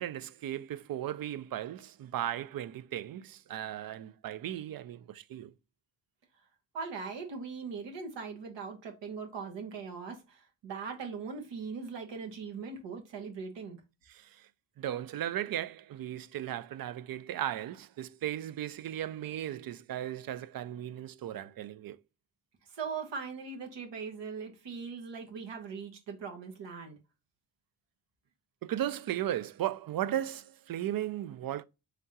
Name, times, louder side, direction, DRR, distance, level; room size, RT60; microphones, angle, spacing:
voice 1, 0.0-5.5 14.1-14.5 14.8-22.0 28.6-31.6, right 12 dB, 55° right, 0.4 m, -36 dB
voice 2, 6.7-13.8 22.7-27.0, right 5 dB, 80° right, 1.2 m, -40 dB
3.7 x 3.4 x 2.7 m
cardioid pair, 65°, 43 cm